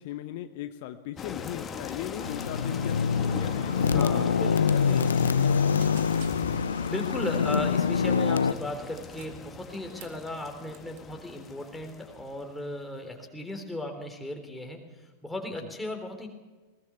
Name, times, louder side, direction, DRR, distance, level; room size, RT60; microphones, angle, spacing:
voice 1, 0.0-5.6 6.3-6.6, left 12 dB, 50° left, 9 dB, 1.0 m, -39 dB
sound 1, 1.2-12.8, left 6 dB, 20° left, 1.6 m, -40 dB
sound 2, 2.2-8.5, left 6 dB, 70° left, 0.7 m, -25 dB
voice 2, 3.8-5.0 6.9-16.3, left 1 dB, 5° left, 3 dB, 3.7 m, -36 dB
sound 3, 4.1-4.3 4.5-4.7 5.1-5.5 5.8-6.7 7.5-8.3 8.8-10.3 10.7-11.0, right 9 dB, 50° right, 2.0 m, -51 dB
20.5 x 20.0 x 6.9 m, 1.3 s
figure-of-eight pair, 90°, 0 cm